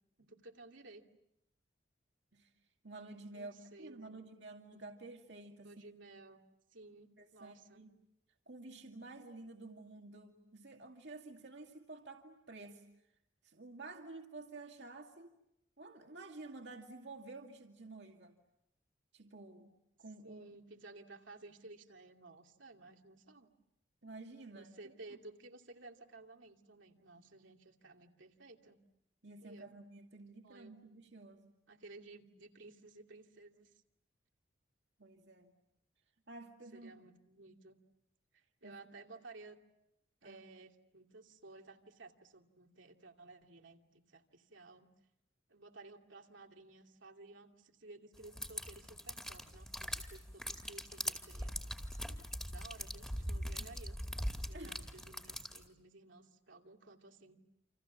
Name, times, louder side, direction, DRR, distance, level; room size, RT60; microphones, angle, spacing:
voice 1, 0.2-1.0 3.3-4.1 5.6-6.4 6.7-7.8 20.2-23.5 24.5-28.8 29.4-29.7 30.4-30.7 31.7-33.8 36.7-37.8 38.3-39.6 40.2-44.9 45.5-51.6 52.5-54.0 54.5-57.4, right 3 dB, 80° right, 2 dB, 2.7 m, -55 dB
voice 2, 2.8-5.7 7.2-7.9 8.5-12.9 13.4-15.3 15.8-18.3 19.1-19.7 20.0-20.4 24.0-24.9 29.2-31.5 35.0-35.5 36.3-37.0 38.6-38.8 40.2-40.4 53.6-53.7 54.5-54.8, right 2 dB, 65° right, 2 dB, 2.3 m, -51 dB
sound 1, 48.2-55.7, equal, 5° left, 2.3 m, -42 dB
29.0 x 27.5 x 7.4 m, 0.81 s
head